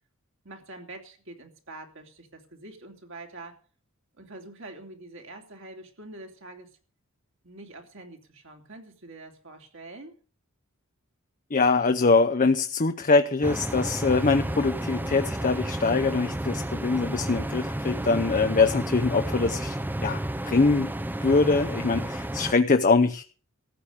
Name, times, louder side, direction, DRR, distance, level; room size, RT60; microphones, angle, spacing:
voice 1, 0.4-3.6 4.2-6.7 7.4-10.2, right 2 dB, 65° right, 3 dB, 3.1 m, -45 dB
voice 2, 11.5-20.9 21.2-23.2, left 4 dB, 40° left, 8 dB, 0.7 m, -23 dB
sound 1, 13.4-22.5, right 1 dB, 10° right, 0.6 m, -31 dB
14.5 x 8.7 x 6.6 m, 0.40 s
head